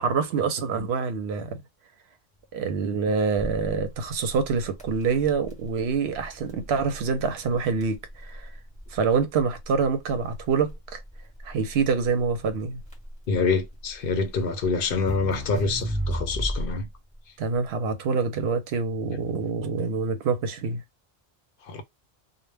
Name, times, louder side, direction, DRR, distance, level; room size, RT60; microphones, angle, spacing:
voice 1, 0.0-1.6 2.5-8.5 8.9-11.0 11.4-12.8 17.4-20.8, right 5 dB, 85° right, 0.9 m, -26 dB
Crackle, 3.4-16.9, equal, 5° left, 1.0 m, -35 dB
voice 2, 13.3-16.9 21.7-21.8, left 4 dB, 65° left, 0.8 m, -26 dB
2.1 x 2.1 x 3.2 m
omnidirectional pair, 1.0 m